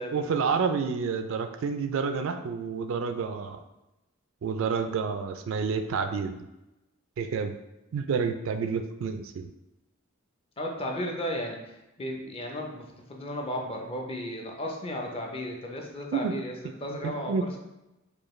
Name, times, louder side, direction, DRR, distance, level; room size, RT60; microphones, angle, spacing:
voice 1, 0.1-3.6 4.4-6.4 7.2-7.5 7.9-9.5 16.1-16.3 16.9-17.4, right 5 dB, 65° right, 7 dB, 0.3 m, -29 dB
voice 2, 10.6-16.5 16.8-17.6, equal, 25° left, 1 dB, 0.5 m, -34 dB
4.8 x 2.3 x 3.1 m, 0.95 s
head